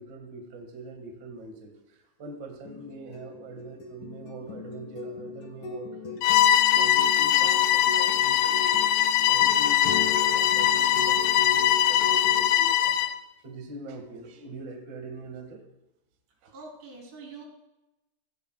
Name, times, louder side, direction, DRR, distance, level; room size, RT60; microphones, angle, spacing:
voice 1, 0.0-6.3 6.7-8.9 9.3-13.1 13.4-15.6 16.4-16.5, right 2 dB, 65° right, 3 dB, 1.1 m, -42 dB
sound 1, 2.7-12.5, left 4 dB, 65° left, 2.1 m, -38 dB
Bowed string instrument, 6.2-13.2, left 11 dB, 85° left, 2.6 m, -22 dB
voice 2, 16.5-17.5, right 3 dB, 80° right, -1 dB, 5.2 m, -44 dB
17.0 x 12.0 x 2.3 m, 0.96 s
omnidirectional pair, 4.9 m